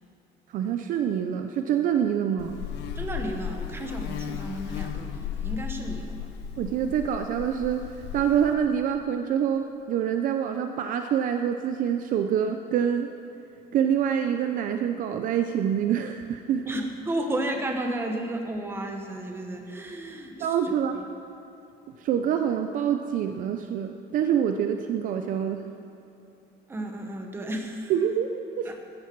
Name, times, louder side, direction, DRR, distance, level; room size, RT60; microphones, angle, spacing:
voice 1, 0.5-2.6 6.6-7.8 8.1-13.1 13.7-16.7 20.4-21.0 22.0-25.6 27.9-28.7, right 8 dB, 45° right, 7 dB, 0.6 m, -26 dB
Buzz, 2.4-8.5, left 8 dB, 70° left, 1.0 m, -35 dB
voice 2, 2.9-6.3 16.6-20.7 26.7-27.9 28.6-28.8, right 1 dB, 10° right, 3 dB, 1.1 m, -33 dB
15.0 x 13.0 x 4.7 m, 2.9 s
cardioid pair, 175°, 19 cm